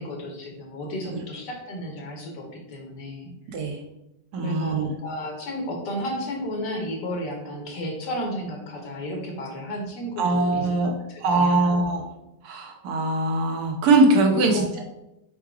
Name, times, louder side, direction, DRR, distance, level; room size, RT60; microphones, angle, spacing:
voice 1, 0.0-3.3 4.4-12.1 14.3-14.8, equal, 75° left, 1 dB, 1.6 m, -33 dB
voice 2, 3.5-3.8 4.3-4.9 10.2-10.9 11.2-12.0 12.4-14.8, right 2 dB, 65° right, 2 dB, 1.3 m, -22 dB
4.7 x 2.2 x 4.7 m, 0.88 s
omnidirectional pair, 1.9 m